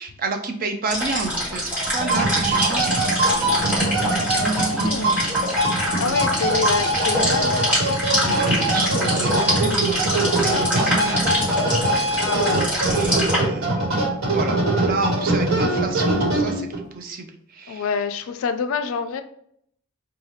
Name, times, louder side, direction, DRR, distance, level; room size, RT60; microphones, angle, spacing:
voice 1, 0.0-5.5 6.0-6.6 8.2-11.2 12.1-17.9, right 3 dB, 40° right, 4 dB, 0.4 m, -31 dB
sound 1, 0.9-13.4, equal, 10° right, 1.4 m, -25 dB
sound 2, 1.8-16.8, right 1 dB, 60° right, 1.2 m, -22 dB
voice 2, 4.8-5.2 6.0-7.6 12.2-12.6 17.7-19.2, left 5 dB, 65° left, 9 dB, 0.3 m, -26 dB
3.2 x 2.3 x 4.1 m, 0.69 s
head